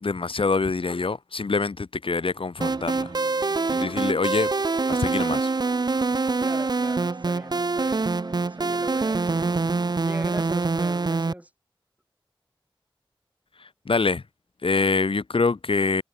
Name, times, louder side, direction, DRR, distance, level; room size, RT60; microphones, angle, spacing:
voice 1, 0.0-3.1 3.7-4.5 4.9-5.5 13.9-14.2 14.6-16.0, left 4 dB, 70° left, 0.9 m, -25 dB
sound 1, 2.6-11.3, right 3 dB, 50° right, 0.5 m, -25 dB
voice 2, 6.4-9.6 10.0-11.5, right 1 dB, 15° right, 4.1 m, -40 dB
wide cardioid pair, 45°, 9 cm